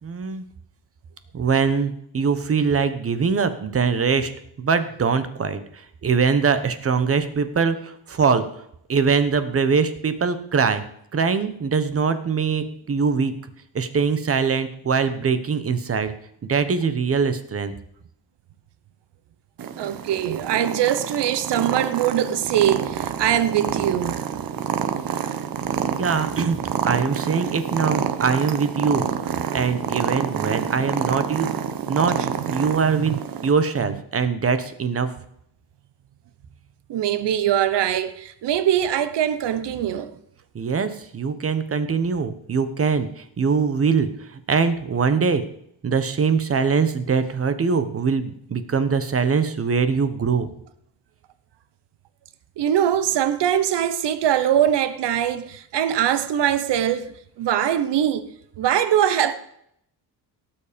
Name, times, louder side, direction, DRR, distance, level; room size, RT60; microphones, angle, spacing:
voice 1, 0.0-0.4 1.3-4.3 4.6-8.4 8.9-10.8 11.1-13.3 13.7-16.1 16.5-17.7 26.0-26.6 26.8-29.0 29.5-31.5 31.9-32.2 32.5-35.1 40.5-45.4 45.8-50.5, right 5 dB, 35° right, 1.1 m, -22 dB
Purr, 19.6-33.5, right 8 dB, 55° right, 1.0 m, -28 dB
voice 2, 19.8-24.2 32.1-32.5 32.8-33.2 36.9-40.1 52.6-58.3 58.6-59.3, right 10 dB, 90° right, 1.0 m, -22 dB
18.0 x 7.3 x 5.2 m
wide cardioid pair, 175°, 40 cm